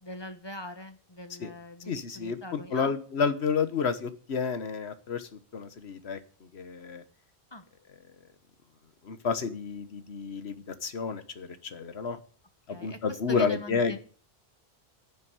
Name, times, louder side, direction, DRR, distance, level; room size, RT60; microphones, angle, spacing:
voice 1, 0.0-2.9 7.5-7.6 12.7-14.0, left 1 dB, 25° left, 8 dB, 1.4 m, -41 dB
voice 2, 1.9-6.2 6.5-7.0 9.0-12.2 12.7-14.0, left 5 dB, 75° left, 11 dB, 1.5 m, -30 dB
10.5 x 7.2 x 9.4 m, 0.42 s
omnidirectional pair, 1.1 m